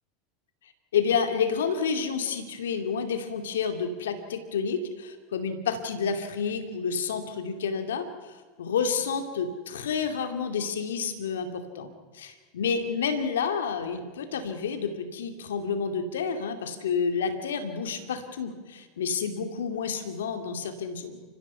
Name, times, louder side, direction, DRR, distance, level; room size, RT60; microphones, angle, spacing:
voice 1, 0.9-21.2, left 6 dB, 80° left, 8 dB, 2.5 m, -29 dB
29.5 x 15.5 x 5.7 m, 1.4 s
hypercardioid pair, 90°, 0 cm